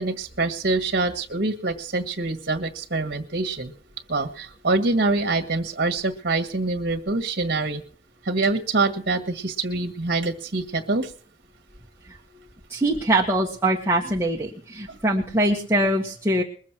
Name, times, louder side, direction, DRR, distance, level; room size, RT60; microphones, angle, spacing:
voice 1, 0.0-3.7 4.1-7.8 8.2-11.1 14.9-15.0, right 3 dB, 60° right, 6 dB, 1.7 m, -25 dB
voice 2, 12.7-16.4, right 1 dB, 15° right, -3 dB, 1.6 m, -23 dB
21.5 x 7.4 x 6.1 m, 0.43 s
head